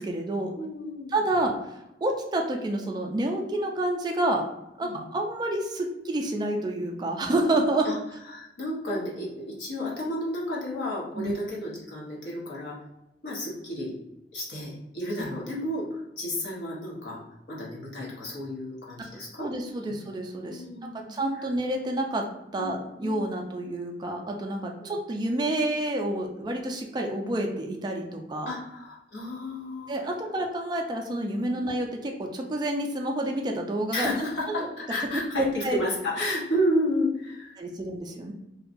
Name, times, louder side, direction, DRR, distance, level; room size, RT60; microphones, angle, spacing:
voice 1, 0.0-0.5 1.1-1.5 2.0-4.4 4.8-7.9 11.2-11.3 19.4-22.3 22.5-28.5 29.9-34.2 34.5-34.6 35.1-35.8 37.6-38.3, right 1 dB, 25° right, 2 dB, 0.3 m, -29 dB
voice 2, 0.6-1.2 4.8-5.0 7.8-8.0 8.3-12.8 13.2-13.9 14.3-17.2 17.5-19.5 19.8-20.0 20.5-21.5 22.5-23.4 24.8-24.9 28.5-30.1 31.6-31.7 33.9-37.6, left 1 dB, 80° left, -4 dB, 0.9 m, -32 dB
2.7 x 2.2 x 2.5 m, 0.88 s
head